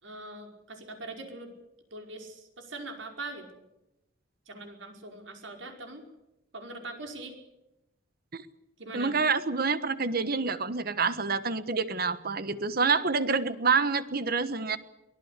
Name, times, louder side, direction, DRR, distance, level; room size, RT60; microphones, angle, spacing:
voice 1, 0.0-1.5 1.9-3.6 4.5-6.0 6.5-7.4 8.8-9.2, right 2 dB, 75° right, 4 dB, 5.1 m, -42 dB
voice 2, 8.9-14.8, right 4 dB, 50° right, 13 dB, 1.4 m, -27 dB
24.0 x 17.5 x 8.3 m, 0.91 s
head